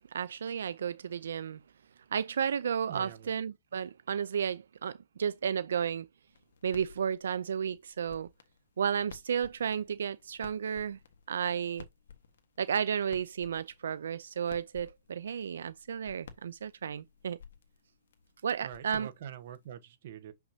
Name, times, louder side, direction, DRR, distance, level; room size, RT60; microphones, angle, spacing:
voice 1, 0.1-1.6 2.1-6.1 6.6-8.3 8.8-11.0 11.3-11.9 12.6-17.4 18.4-19.1, right 7 dB, 90° right, 0.4 m, -33 dB
voice 2, 2.9-3.3 18.6-20.3, right 9 dB, 45° right, 1.1 m, -44 dB
sound 1, 6.3-19.7, left 6 dB, 80° left, 1.4 m, -55 dB
6.5 x 5.9 x 2.8 m
hypercardioid pair, 175°, 0 cm